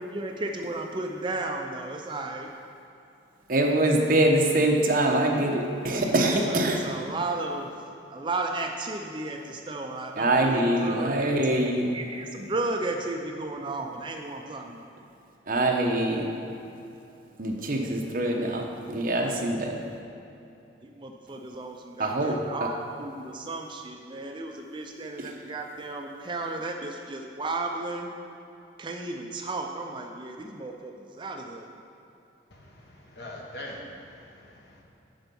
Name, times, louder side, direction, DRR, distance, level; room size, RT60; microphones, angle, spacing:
voice 1, 0.0-2.5 6.3-7.7 8.1-14.9 20.8-28.1 28.8-31.7, right 2 dB, 25° right, 2 dB, 0.4 m, -34 dB
voice 2, 3.5-6.8 10.2-11.9 15.5-16.3 17.4-19.7 22.0-22.7 25.2-25.3, right 1 dB, 50° right, 1 dB, 0.8 m, -24 dB
voice 3, 32.5-34.8, left 1 dB, 60° left, -2 dB, 1.3 m, -43 dB
10.5 x 4.5 x 5.3 m, 2.8 s
head